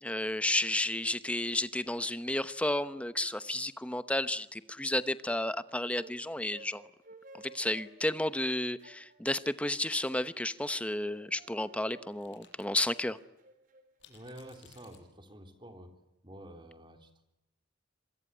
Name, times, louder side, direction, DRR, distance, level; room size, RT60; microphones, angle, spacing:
voice 1, 0.0-6.8 7.4-13.2, left 1 dB, 5° left, 13 dB, 0.9 m, -32 dB
sound 1, 6.0-14.2, right 2 dB, 45° right, 4.1 m, -56 dB
sound 2, 9.8-10.2 12.1-12.6 13.1-13.2 14.0-15.0, left 8 dB, 65° left, 7.9 m, -60 dB
voice 2, 14.1-15.9 16.2-17.2, right 1 dB, 25° right, 6 dB, 3.7 m, -49 dB
26.5 x 23.0 x 9.2 m, 0.91 s
head